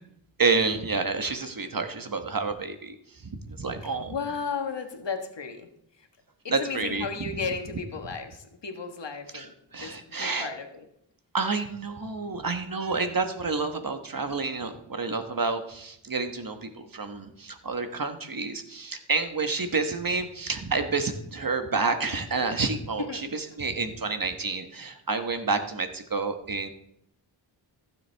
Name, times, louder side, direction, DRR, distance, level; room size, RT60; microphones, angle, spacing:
voice 1, 0.4-2.9 3.5-4.1 6.5-7.1 9.3-9.4 9.7-10.5 11.3-26.7, right 4 dB, 45° right, 7 dB, 1.3 m, -29 dB
voice 2, 3.8-5.7 6.0-6.1 6.4-10.9 23.0-23.2, left 5 dB, 60° left, 5 dB, 1.5 m, -34 dB
15.0 x 7.4 x 3.4 m, 0.75 s
cardioid pair, 45°, 48 cm